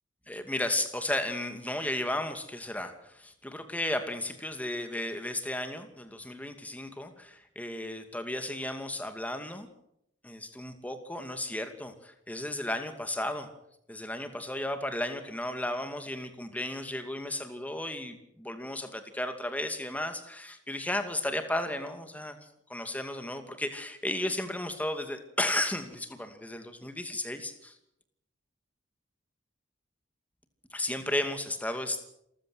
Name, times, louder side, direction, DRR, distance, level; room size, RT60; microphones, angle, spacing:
voice 1, 0.3-9.7 10.2-13.5 13.9-22.4 22.7-27.8 30.7-32.0, left 1 dB, 10° left, 7 dB, 2.5 m, -34 dB
28.0 x 15.0 x 8.0 m, 0.77 s
head